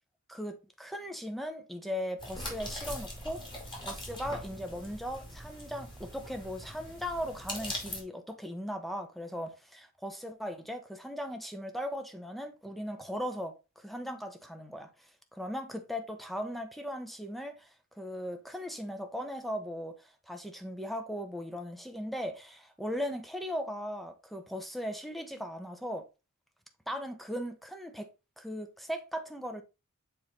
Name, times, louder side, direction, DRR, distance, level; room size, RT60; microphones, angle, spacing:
voice 1, 0.3-3.4 3.8-14.9 15.3-26.1 26.9-28.1 28.4-29.6, equal, ahead, 0.9 m, -38 dB
sound 1, 2.2-8.0, left 1 dB, 20° left, 2.4 m, -41 dB
7.1 x 4.3 x 3.9 m
head